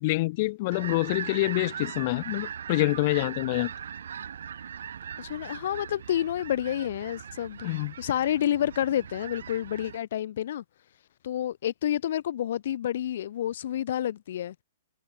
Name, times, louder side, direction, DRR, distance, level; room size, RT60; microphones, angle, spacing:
voice 1, 0.0-3.7 7.6-7.9, left 21 dB, 40° left, 1.2 m, -26 dB
sound 1, 0.7-10.0, right 8 dB, 80° right, 1.0 m, -40 dB
voice 2, 5.2-7.7 8.0-10.6 11.2-14.5, left 11 dB, 60° left, 0.9 m, -29 dB
hypercardioid pair, 160°, 0 cm